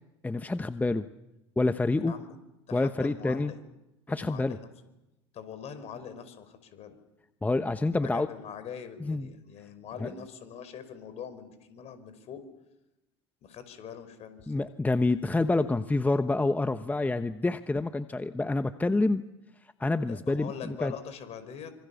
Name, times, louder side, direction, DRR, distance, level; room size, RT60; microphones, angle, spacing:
voice 1, 0.2-1.1 1.6-2.1 2.7-3.5 4.1-4.6 7.4-8.3 9.0-9.3 10.0-10.1 14.5-19.2 19.8-20.9, left 2 dB, 10° left, 10 dB, 1.1 m, -27 dB
voice 2, 2.7-3.6 4.1-4.7 5.3-7.0 8.0-12.4 13.4-14.7 20.1-21.7, left 7 dB, 50° left, 11 dB, 5.2 m, -43 dB
27.0 x 26.0 x 7.1 m, 0.94 s
hypercardioid pair, 80°, 14 cm